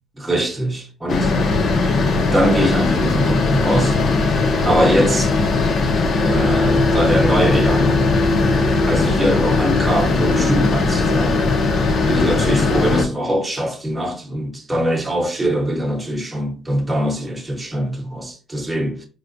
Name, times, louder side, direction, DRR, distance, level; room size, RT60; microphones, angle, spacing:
voice 1, 0.2-1.4 2.3-4.0 4.6-5.3 6.1-8.0 8.9-11.4 12.1-19.0, equal, 10° right, 0.8 m, -22 dB
sound 1, 1.1-13.0, left 3 dB, 55° left, 0.6 m, -18 dB
4.4 x 2.2 x 2.5 m
cardioid pair, 130°, 0 cm